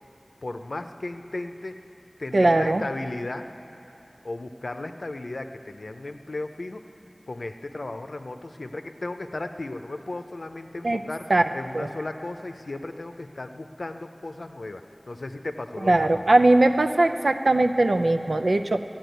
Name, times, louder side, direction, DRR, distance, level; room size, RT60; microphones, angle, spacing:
voice 1, 0.4-1.7 2.2-3.5 4.2-6.8 7.3-11.2 11.5-16.2, left 2 dB, 80° left, 7 dB, 0.6 m, -35 dB
voice 2, 2.3-2.8 10.8-11.0 11.3-11.5 11.7-11.9 15.8-18.8, right 2 dB, 80° right, 8 dB, 0.6 m, -20 dB
13.5 x 8.8 x 9.1 m, 3.0 s
wide cardioid pair, 40°, 0 cm